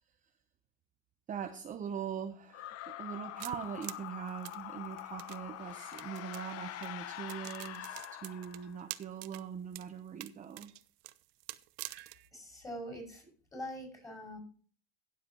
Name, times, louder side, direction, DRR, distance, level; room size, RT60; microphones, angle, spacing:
voice 1, 1.3-10.7, right 8 dB, 25° right, 0.7 m, -42 dB
sound 1, 2.5-8.9, left 12 dB, 50° left, 0.9 m, -45 dB
sound 2, 3.4-5.4 5.9-6.5 6.8-6.9 7.3-9.4 9.7-9.9 10.2-12.3, right 20 dB, 70° right, 0.8 m, -45 dB
voice 2, 12.3-14.4, equal, 10° left, 5.5 m, -44 dB
17.0 x 7.6 x 2.9 m
supercardioid pair, 130°, 32 cm